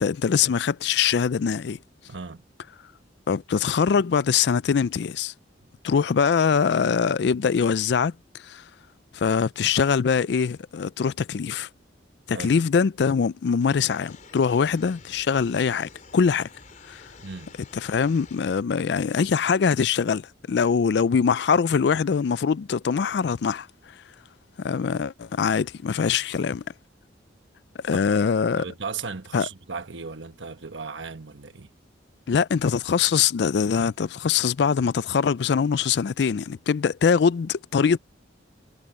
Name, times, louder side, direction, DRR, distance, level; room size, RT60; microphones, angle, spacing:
voice 1, 0.0-1.8 3.3-5.3 5.8-8.1 8.4-8.6 9.1-11.7 12.3-16.5 16.9-17.0 17.7-23.7 24.6-26.6 27.8-28.7 29.3-29.5 32.3-38.0, left 6 dB, 60° left, 0.4 m, -23 dB
voice 2, 2.1-2.4 12.3-12.6 17.2-17.6 27.9-28.2 28.5-31.7, right 5 dB, 80° right, 1.2 m, -36 dB
sound 1, 13.6-18.6, left 4 dB, 40° left, 4.1 m, -49 dB
head